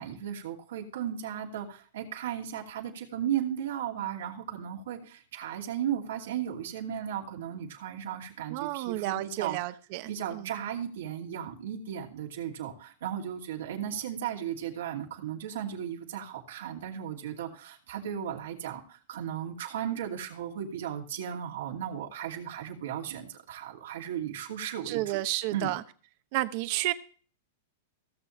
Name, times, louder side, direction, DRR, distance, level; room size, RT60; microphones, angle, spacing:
voice 1, 0.0-9.6 10.1-25.2 25.5-25.7, right 9 dB, 80° right, 0 dB, 2.6 m, -35 dB
voice 2, 8.5-10.5 24.8-25.8 26.3-26.9, right 17 dB, 50° right, 12 dB, 0.9 m, -31 dB
17.5 x 7.0 x 3.2 m, 0.42 s
hypercardioid pair, 130°, 0 cm